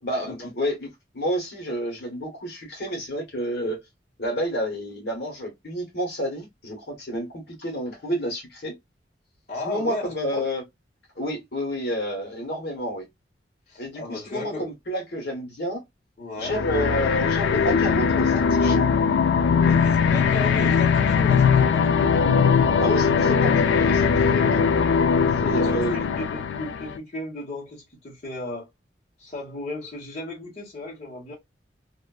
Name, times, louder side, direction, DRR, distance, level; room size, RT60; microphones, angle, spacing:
voice 1, 0.0-0.9 1.1-3.8 4.2-8.7 9.6-10.6 11.2-13.1 13.8-15.8 16.4-18.9 22.8-24.7 25.4-26.1, equal, 60° left, 1.0 m, -29 dB
voice 2, 9.5-10.1 13.7-14.6 16.2-16.6 19.6-22.2 25.6-26.0 26.3-28.7 29.2-31.3, left 2 dB, 40° left, 1.0 m, -35 dB
sound 1, 16.5-27.0, left 6 dB, 85° left, 0.3 m, -20 dB
2.4 x 2.3 x 2.3 m
head